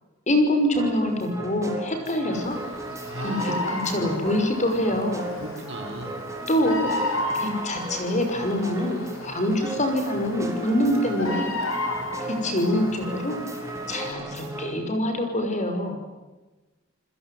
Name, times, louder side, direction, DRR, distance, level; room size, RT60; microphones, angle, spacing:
voice 1, 0.3-2.6 3.2-5.2 6.5-6.9 7.4-11.5 12.4-13.4 13.9-16.0, left 1 dB, 35° left, 6 dB, 5.8 m, -25 dB
sound 1, 0.7-14.8, right 2 dB, 15° right, 4.3 m, -37 dB
Bird vocalization bird call bird song, 2.3-14.1, left 1 dB, 75° left, 6.8 m, -34 dB
voice 2, 3.0-3.7 5.4-6.2 12.2-12.9, right 1 dB, 60° right, 4 dB, 5.5 m, -37 dB
29.0 x 21.0 x 9.4 m, 1.1 s
head